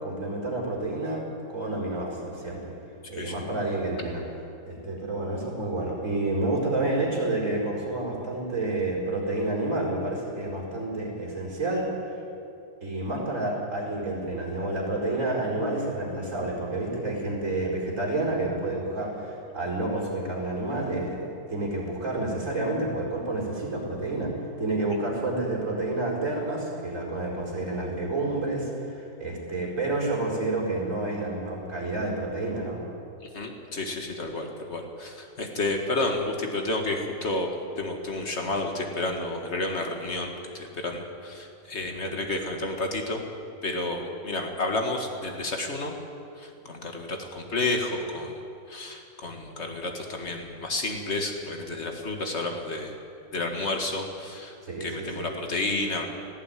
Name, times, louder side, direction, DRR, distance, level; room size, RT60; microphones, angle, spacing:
voice 1, 0.0-1.2 1.5-2.7 3.1-4.2 4.7-11.9 12.8-24.3 24.6-32.8 42.0-42.2 54.6-55.3, right 2 dB, 50° right, -3 dB, 4.9 m, -29 dB
voice 2, 33.3-37.5 37.8-43.2 43.6-45.9 46.4-48.4 48.7-52.9 53.3-56.1, left 2 dB, 40° left, 3 dB, 2.3 m, -31 dB
18.5 x 15.0 x 9.5 m, 2.6 s
omnidirectional pair, 1.8 m